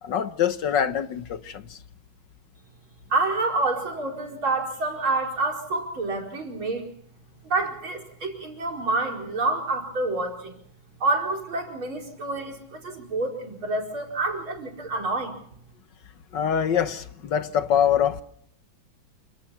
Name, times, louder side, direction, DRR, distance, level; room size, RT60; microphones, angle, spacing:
voice 1, 0.0-1.8 16.3-18.2, left 8 dB, 65° left, 1.7 m, -24 dB
voice 2, 3.1-6.9 7.4-10.5 11.0-15.3, right 2 dB, 80° right, 5.5 m, -28 dB
28.5 x 18.0 x 5.8 m
omnidirectional pair, 2.2 m